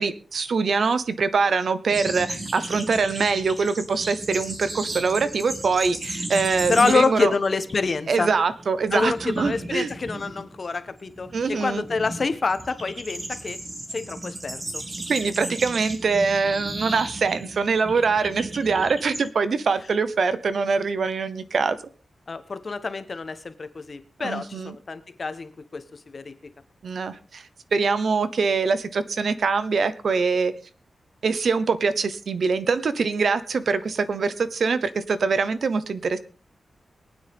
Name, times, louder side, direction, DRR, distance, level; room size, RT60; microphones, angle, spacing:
voice 1, 0.0-7.3 8.1-9.9 11.3-11.8 15.1-21.8 24.2-24.7 26.8-27.4 27.7-30.5 31.2-36.2, right 4 dB, 60° right, 13 dB, 0.9 m, -23 dB
sound 1, 1.9-7.3 7.5-7.9 8.2-19.3, right 1 dB, 25° right, 2.1 m, -35 dB
voice 2, 6.7-8.3 8.9-13.6 13.9-14.8 22.3-26.3, left 4 dB, 40° left, 11 dB, 1.1 m, -27 dB
23.0 x 9.5 x 3.6 m, 0.36 s
wide cardioid pair, 155°, 0 cm